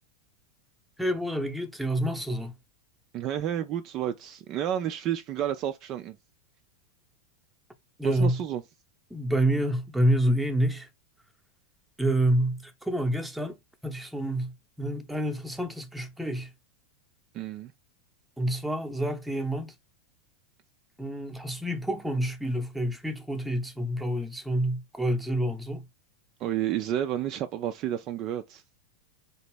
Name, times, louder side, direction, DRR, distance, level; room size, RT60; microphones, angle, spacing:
voice 1, 1.0-2.5 8.0-8.4 9.1-10.9 12.0-16.5 18.4-19.7 21.0-25.8, right 1 dB, 5° right, 0.7 m, -28 dB
voice 2, 3.1-6.2 8.0-8.6 17.3-17.7 26.4-28.6, right 11 dB, 35° right, 0.3 m, -31 dB
4.0 x 2.9 x 3.3 m
figure-of-eight pair, 90°, 0 cm